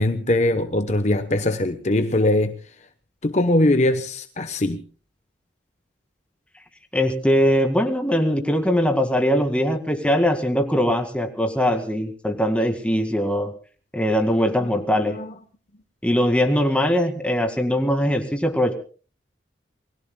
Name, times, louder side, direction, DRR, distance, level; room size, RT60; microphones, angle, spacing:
voice 1, 0.0-2.5 3.2-4.8 15.0-15.3, left 1 dB, 40° left, 0.9 m, -21 dB
voice 2, 6.9-13.5 13.9-15.2 16.0-18.7, equal, 5° left, 2.0 m, -21 dB
28.5 x 20.5 x 2.2 m
head